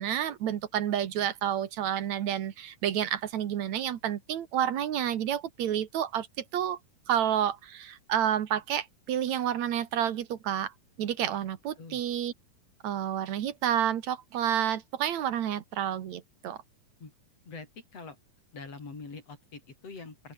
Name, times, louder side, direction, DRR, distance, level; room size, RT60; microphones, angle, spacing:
voice 1, 0.0-6.8 7.1-10.7 11.0-12.3 12.8-16.6, right 10 dB, 60° right, 2.5 m, -30 dB
voice 2, 17.5-18.2 18.5-20.3, left 4 dB, 45° left, 6.0 m, -44 dB
open air
omnidirectional pair, 3.9 m